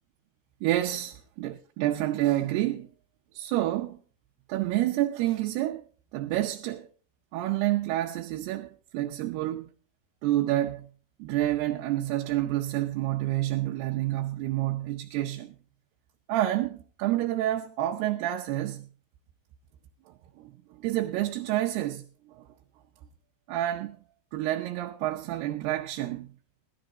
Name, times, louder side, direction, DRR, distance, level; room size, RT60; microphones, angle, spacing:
voice 1, 0.6-2.9 3.3-4.0 4.5-5.8 6.1-6.9 7.3-9.7 10.2-10.9 11.2-15.6 16.3-18.9 20.4-20.5 20.8-22.0 23.5-24.0 24.3-26.3, right 14 dB, 80° right, 2.8 m, -28 dB
16.5 x 13.0 x 3.9 m
omnidirectional pair, 4.8 m